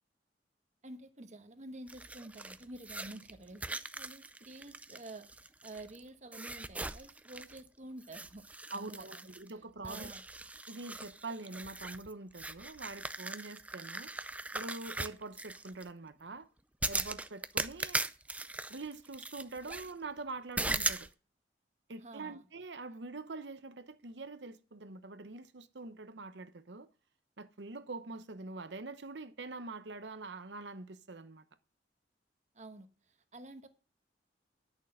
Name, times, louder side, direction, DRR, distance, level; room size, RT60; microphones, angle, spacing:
voice 1, 0.8-8.4 8.7-9.3 9.8-10.2 22.0-22.5 32.5-33.7, right 2 dB, 40° right, 1.2 m, -49 dB
sound 1, 1.9-6.0 6.3-7.7 8.0-9.5 9.8-15.8 16.8-19.9 20.6-21.1, right 2 dB, 10° right, 0.4 m, -39 dB
voice 2, 8.7-10.1 10.7-14.1 14.5-16.5 16.9-18.0 18.7-21.1 21.9-26.9 27.4-31.4, right 3 dB, 75° right, 0.9 m, -44 dB
11.0 x 6.3 x 6.4 m
head